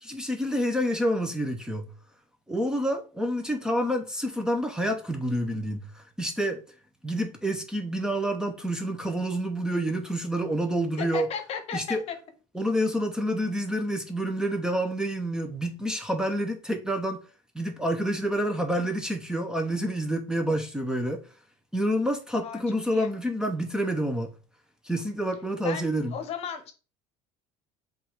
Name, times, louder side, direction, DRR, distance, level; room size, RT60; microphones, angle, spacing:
voice 1, 0.0-1.9 2.5-6.6 7.0-11.3 11.7-12.0 12.5-17.2 17.5-21.2 21.7-24.3 24.8-26.2, equal, 5° right, 0.6 m, -28 dB
voice 2, 11.0-12.1 22.3-22.6 22.9-23.1 25.6-26.7, left 7 dB, 50° left, 0.9 m, -35 dB
5.5 x 2.4 x 3.5 m
cardioid pair, 115°, 14 cm